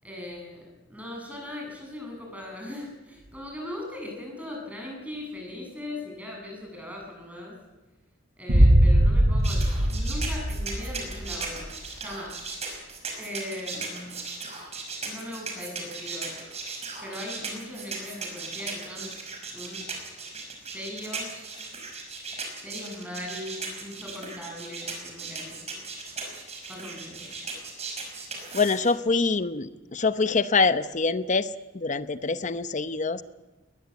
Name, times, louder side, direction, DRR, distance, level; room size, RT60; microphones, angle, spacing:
voice 1, 0.0-7.6 8.4-12.4 13.2-14.1 15.0-16.4 17.0-19.1 19.5-19.8 20.3-21.7 22.6-25.6 26.7-27.3, left 1 dB, 5° right, 0 dB, 7.7 m, -39 dB
sound 1, 8.5-11.5, right 1 dB, 55° right, 2.3 m, -20 dB
sound 2, 9.4-28.9, right 4 dB, 35° right, 5.5 m, -37 dB
voice 2, 28.5-31.5 31.7-33.2, left 4 dB, 40° left, 12 dB, 0.8 m, -25 dB
21.5 x 20.5 x 8.3 m, 1.2 s
head